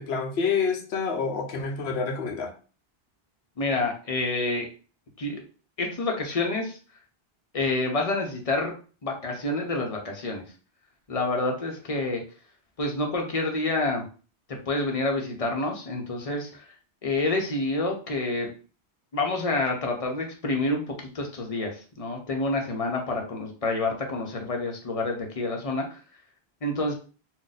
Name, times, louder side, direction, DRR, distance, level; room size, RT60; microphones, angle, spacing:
voice 1, 0.0-2.5, left 5 dB, 80° left, 4 dB, 0.9 m, -28 dB
voice 2, 3.6-4.7 5.2-5.4 5.8-6.8 7.5-8.7 9.0-10.4 11.1-12.2 12.8-14.0 14.5-16.6 17.0-18.5 19.1-26.0 26.6-26.9, left 2 dB, 40° left, 2 dB, 0.7 m, -28 dB
2.6 x 2.2 x 3.9 m, 0.37 s
omnidirectional pair, 1.1 m